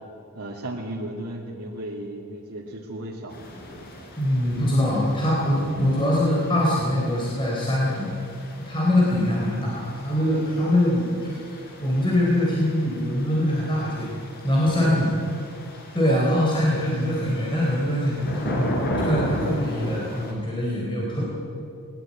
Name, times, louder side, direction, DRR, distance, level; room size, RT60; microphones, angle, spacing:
voice 1, 0.3-3.4 14.8-14.9 16.1-16.3, right 1 dB, 90° right, -2 dB, 2.3 m, -34 dB
sound 1, 3.3-20.3, equal, 45° left, 4.2 m, -36 dB
voice 2, 4.2-8.1 8.6-11.3 11.8-14.1 14.4-15.1 15.9-21.3, left 1 dB, 20° left, -4 dB, 4.0 m, -23 dB
19.0 x 19.0 x 8.8 m, 2.5 s
head